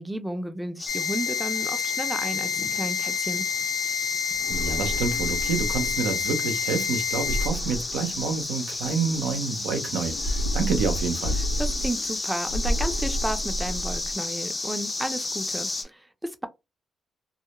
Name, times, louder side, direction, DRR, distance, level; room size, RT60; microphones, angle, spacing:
voice 1, 0.0-3.4 11.4-16.5, right 1 dB, 10° right, 0.6 m, -33 dB
sound 1, 0.8-15.8, left 2 dB, 35° left, 0.7 m, -33 dB
sound 2, 0.9-7.5, left 8 dB, 60° left, 0.9 m, -29 dB
sound 3, 4.3-6.2 7.1-8.6 10.0-12.2 12.5-14.2, right 1 dB, 85° left, 0.6 m, -30 dB
voice 2, 4.5-11.3, right 5 dB, 85° right, 0.5 m, -28 dB
2.3 x 2.0 x 2.9 m
supercardioid pair, 50°, 0 cm